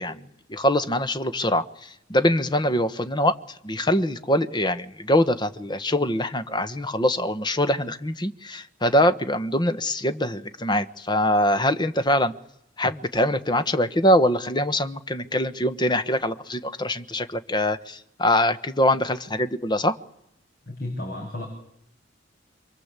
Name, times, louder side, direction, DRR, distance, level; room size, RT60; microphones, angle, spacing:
voice 1, 0.0-3.4 3.6-12.3 12.8-20.0, left 1 dB, 25° left, 1.3 m, -23 dB
voice 2, 20.7-21.5, left 1 dB, 50° left, 6.5 m, -32 dB
28.0 x 23.0 x 8.3 m
head